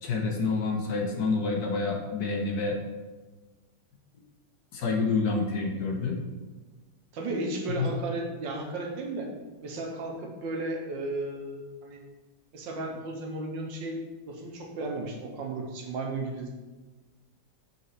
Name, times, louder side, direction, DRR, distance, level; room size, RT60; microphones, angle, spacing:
voice 1, 0.0-2.8 4.7-6.2 7.7-7.9, left 4 dB, 60° left, 1 dB, 1.4 m, -28 dB
voice 2, 7.1-9.3 9.6-12.0 12.5-14.0 14.3-16.5, right 2 dB, 85° right, 1 dB, 1.7 m, -34 dB
7.1 x 4.1 x 4.2 m, 1.2 s
omnidirectional pair, 2.0 m